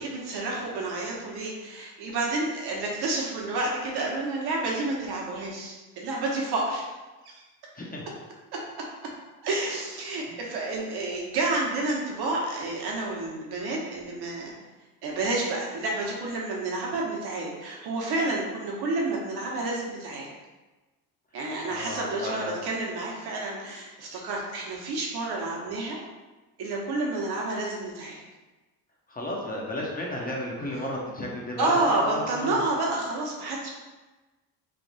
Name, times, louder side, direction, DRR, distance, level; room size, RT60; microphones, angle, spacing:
voice 1, 0.0-6.9 7.2-7.3 9.4-14.5 15.0-20.3 21.3-26.0 26.6-28.2 31.6-33.7, right 2 dB, 55° right, -2 dB, 1.2 m, -29 dB
voice 2, 7.7-8.1 10.3-10.4 21.7-22.6 29.1-32.6, left 1 dB, 20° left, -3 dB, 0.8 m, -33 dB
3.4 x 2.3 x 4.1 m, 1.2 s
supercardioid pair, 95°, 45 cm